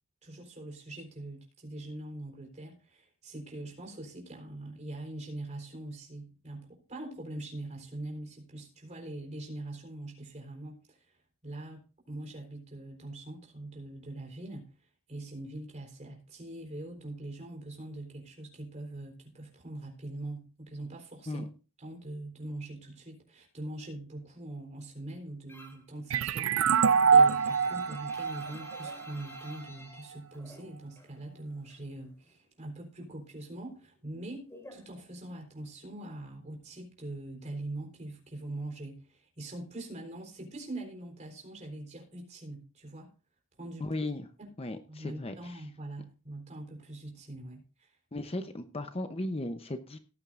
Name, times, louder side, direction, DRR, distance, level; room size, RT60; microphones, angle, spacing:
voice 1, 0.2-11.1 11.4-14.7 15.1-21.5 21.8-43.1 43.6-44.0 44.4-44.5 44.9-47.9, right 1 dB, 35° right, 1 dB, 3.9 m, -43 dB
sound 1, 25.5-25.9 26.3-31.2 31.4-32.5 32.8-35.6, left 1 dB, 10° left, 3.5 m, -52 dB
sound 2, 26.1-29.5, right 6 dB, 70° right, 0.4 m, -25 dB
voice 2, 43.8-44.3 44.6-45.6 48.1-50.0, left 1 dB, 25° left, 8 dB, 0.8 m, -36 dB
18.0 x 8.9 x 2.5 m, 0.34 s
head